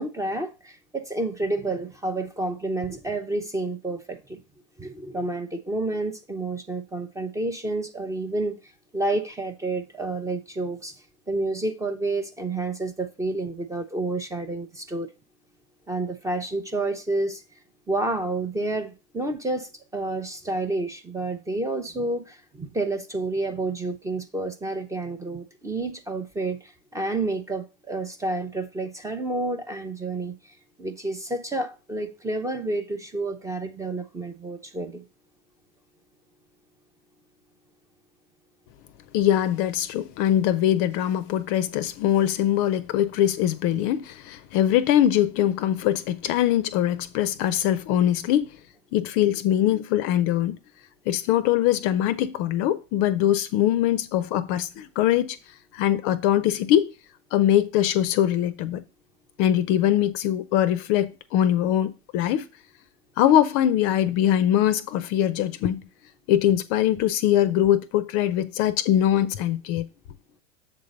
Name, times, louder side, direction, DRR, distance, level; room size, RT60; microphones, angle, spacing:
voice 1, 0.0-4.4 4.8-8.6 8.9-10.9 11.3-15.1 15.9-17.4 17.9-30.4 30.8-35.0, right 2 dB, 10° right, 0.6 m, -29 dB
voice 2, 39.1-48.5 48.9-50.6 51.1-55.4 55.7-56.9 57.3-58.8 59.4-62.5 63.2-65.8 66.3-69.9, left 11 dB, 35° left, 0.5 m, -22 dB
7.3 x 3.8 x 5.2 m
hypercardioid pair, 105°, 37 cm